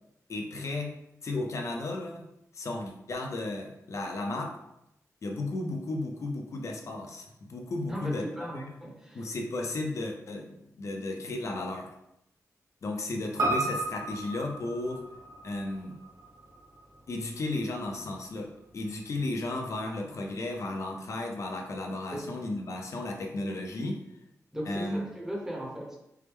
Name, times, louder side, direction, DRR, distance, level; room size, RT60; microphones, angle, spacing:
voice 1, 0.3-2.3 2.5-4.6 5.2-8.7 9.1-11.9 12.8-15.0 15.4-16.0 17.1-24.0 24.7-25.1, left 2 dB, 55° left, 2 dB, 0.6 m, -34 dB
voice 2, 7.9-9.3 22.1-22.3 24.5-26.0, equal, 10° right, -3 dB, 1.0 m, -37 dB
Piano, 13.4-17.9 18.2-18.3, right 2 dB, 85° right, 1.3 m, -34 dB
4.6 x 2.1 x 3.4 m, 0.83 s
wide cardioid pair, 125°, 6 cm